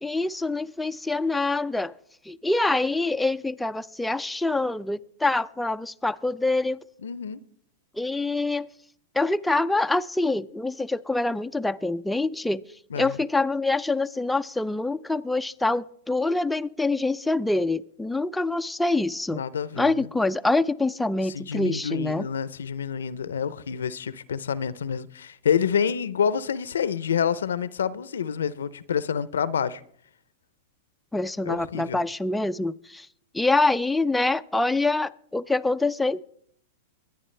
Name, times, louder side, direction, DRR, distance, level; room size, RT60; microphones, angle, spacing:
voice 1, 0.0-1.9 2.3-6.8 8.0-8.7 9.1-12.6 13.0-19.4 19.8-22.3 31.1-33.1 33.3-36.2, left 2 dB, 5° left, 0.4 m, -25 dB
voice 2, 7.0-7.4 12.9-13.2 19.3-20.0 21.3-29.8 31.4-32.0, left 7 dB, 85° left, 0.6 m, -28 dB
23.0 x 9.6 x 3.3 m
hypercardioid pair, 115°, 0 cm